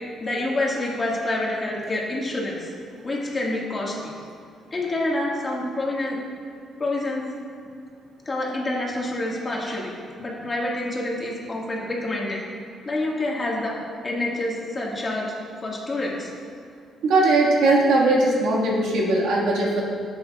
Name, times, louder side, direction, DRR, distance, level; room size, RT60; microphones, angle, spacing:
voice 1, 0.2-2.7 3.0-4.1 4.7-6.2 6.8-7.2 8.3-9.9 10.2-12.4 12.9-13.8 14.0-15.3 15.6-16.3, left 2 dB, 30° left, -3 dB, 1.7 m, -27 dB
voice 2, 17.0-19.8, right 2 dB, 85° right, -3 dB, 1.7 m, -19 dB
11.0 x 7.9 x 2.4 m, 2.2 s
cardioid pair, 90°, 0 cm